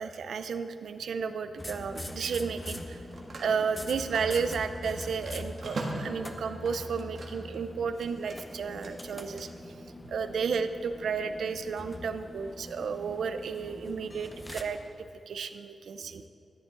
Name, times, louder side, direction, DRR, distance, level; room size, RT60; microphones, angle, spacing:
voice 1, 0.0-3.0 3.4-9.7 10.0-16.3, right 5 dB, 80° right, 10 dB, 0.5 m, -33 dB
Telephone, 0.6-0.8 2.7-7.6 7.9-9.4, right 2 dB, 50° right, 1.5 m, -42 dB
sound 1, 1.6-14.6, left 1 dB, 10° left, 0.6 m, -43 dB
13.5 x 10.5 x 3.9 m, 2.7 s
wide cardioid pair, 180°, 0 cm